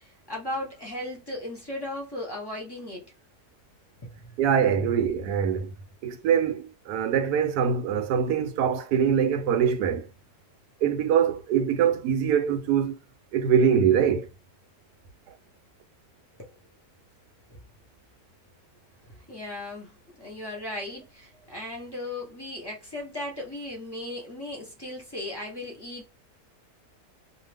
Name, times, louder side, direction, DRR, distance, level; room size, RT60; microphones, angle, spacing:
voice 1, 0.0-3.1 4.0-4.4 16.4-16.5 17.5-17.6 19.1-26.1, left 1 dB, 20° left, 0.7 m, -37 dB
voice 2, 4.4-5.8 6.0-10.1 10.8-13.0 13.3-14.3, right 7 dB, 90° right, 1.2 m, -23 dB
2.6 x 2.3 x 3.3 m
omnidirectional pair, 1.7 m